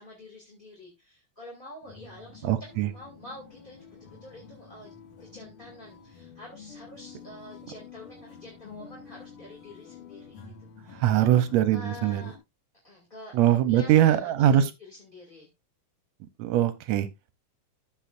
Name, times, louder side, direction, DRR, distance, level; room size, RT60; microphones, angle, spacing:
voice 1, 0.0-2.5 2.9-4.9 5.2-10.3 10.6-11.4 11.7-12.3 12.8-15.5, left 1 dB, 20° left, 2.2 m, -47 dB
sound 1, 1.8-12.4, left 6 dB, 80° left, 3.4 m, -49 dB
voice 2, 2.4-2.9 10.9-12.3 13.3-14.7 16.4-17.1, right 11 dB, 75° right, 1.8 m, -22 dB
14.5 x 6.1 x 2.5 m
omnidirectional pair, 3.5 m